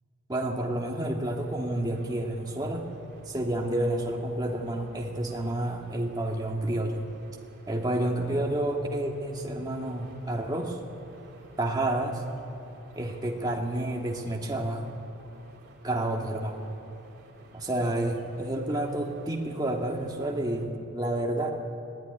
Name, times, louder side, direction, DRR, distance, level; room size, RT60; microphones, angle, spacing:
voice 1, 0.3-2.9 3.3-7.0 7.7-10.8 11.6-12.2 13.0-14.9 15.8-16.6 17.5-21.5, right 1 dB, 20° right, 1 dB, 1.9 m, -30 dB
sound 1, 1.2-20.7, right 1 dB, 50° right, 3.2 m, -54 dB
24.0 x 17.0 x 9.9 m, 2.9 s
head